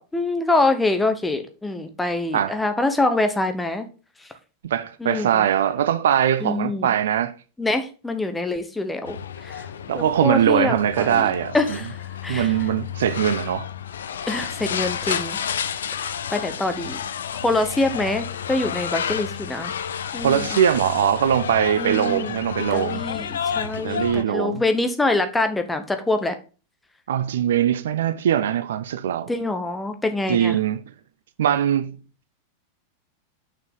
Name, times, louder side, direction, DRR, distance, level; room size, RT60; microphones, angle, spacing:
voice 1, 0.0-3.9 5.0-5.4 6.4-6.9 7.6-9.2 9.4-9.7 9.9-11.9 12.2-12.5 14.3-15.4 16.0-17.0 17.4-19.7 20.1-20.5 21.8-22.4 22.7-26.3 29.3-30.5, left 2 dB, 10° left, 1.1 m, -25 dB
voice 2, 4.7-7.3 9.9-11.8 12.3-13.7 20.2-23.0 23.8-24.6 27.1-29.3 30.3-30.8 31.4-32.0, right 10 dB, 60° right, 0.6 m, -21 dB
sound 1, 9.1-24.2, left 8 dB, 65° left, 0.5 m, -31 dB
6.5 x 6.0 x 3.8 m
figure-of-eight pair, 90°, 0 cm